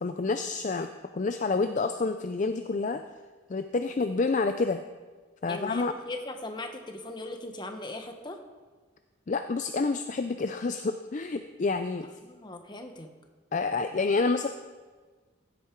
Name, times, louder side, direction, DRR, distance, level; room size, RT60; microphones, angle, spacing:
voice 1, 0.0-3.0 3.5-4.8 5.4-5.9 9.3-12.1 13.5-14.5, left 3 dB, 40° left, 8 dB, 0.4 m, -28 dB
voice 2, 5.5-8.4 12.2-13.1, left 2 dB, 20° left, 5 dB, 1.0 m, -39 dB
15.5 x 8.5 x 4.6 m, 1.4 s
head